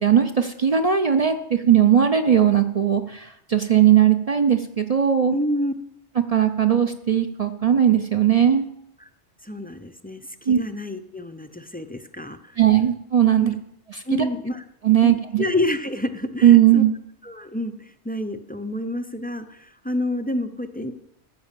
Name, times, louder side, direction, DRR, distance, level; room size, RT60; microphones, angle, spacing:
voice 1, 0.0-5.3 6.3-8.7 10.5-10.6 12.6-13.5 13.9-14.2 14.8-15.5 16.4-17.0, right 9 dB, 45° right, 7 dB, 0.5 m, -18 dB
voice 2, 5.3-5.7 9.0-9.1 9.4-12.6 13.4-13.6 14.1-14.6 15.0-16.8 17.2-20.9, left 1 dB, 15° left, 8 dB, 0.3 m, -28 dB
14.0 x 5.2 x 7.4 m, 0.77 s
omnidirectional pair, 1.2 m